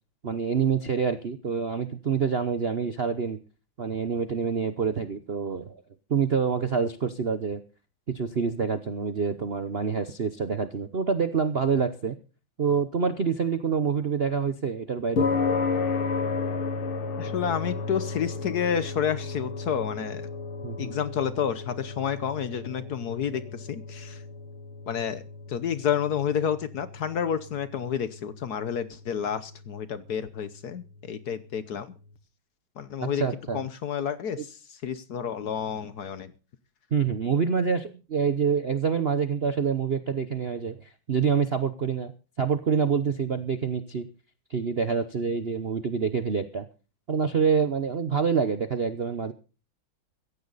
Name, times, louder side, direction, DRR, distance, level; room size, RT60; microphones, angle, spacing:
voice 1, 0.2-3.4 3.8-5.8 6.1-7.6 8.1-12.2 12.6-15.3 20.6-21.0 33.0-33.6 36.9-42.1 42.4-44.1 44.5-46.7 47.1-49.3, right 6 dB, 50° right, 10 dB, 0.7 m, -26 dB
sound 1, 15.2-31.7, left 4 dB, 85° left, 2.3 m, -34 dB
voice 2, 17.2-20.3 20.8-24.2 24.9-25.2 25.5-31.9 32.8-33.2 33.5-36.3, left 8 dB, 60° left, 14 dB, 1.2 m, -30 dB
16.0 x 15.0 x 4.1 m, 0.34 s
omnidirectional pair, 2.3 m